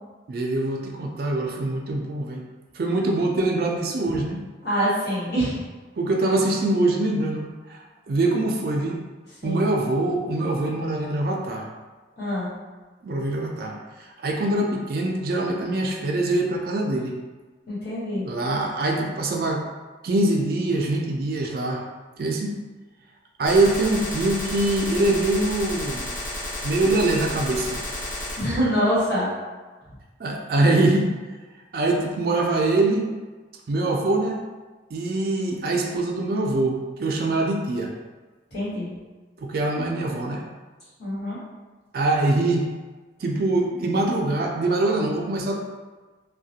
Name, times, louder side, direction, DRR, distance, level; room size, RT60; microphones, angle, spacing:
voice 1, 0.3-2.4 2.7-4.4 6.0-7.8 8.1-9.0 9.4-11.7 13.0-13.8 14.2-17.1 18.2-19.6 20.0-21.8 22.2-22.6 23.4-26.0 26.6-27.8 30.2-31.1 31.7-33.1 33.7-34.4 34.9-37.9 39.4-40.4 41.9-42.7 43.2-45.6, right 2 dB, 55° right, 1 dB, 0.3 m, -23 dB
voice 2, 4.6-5.6 9.4-9.6 12.2-12.5 17.7-18.3 28.4-29.3 38.5-38.9 41.0-41.4, equal, 60° left, -10 dB, 1.3 m, -25 dB
Gunshot gunfire, 23.5-28.5, left 1 dB, 45° left, 0.5 m, -32 dB
2.3 x 2.1 x 2.7 m, 1.3 s
head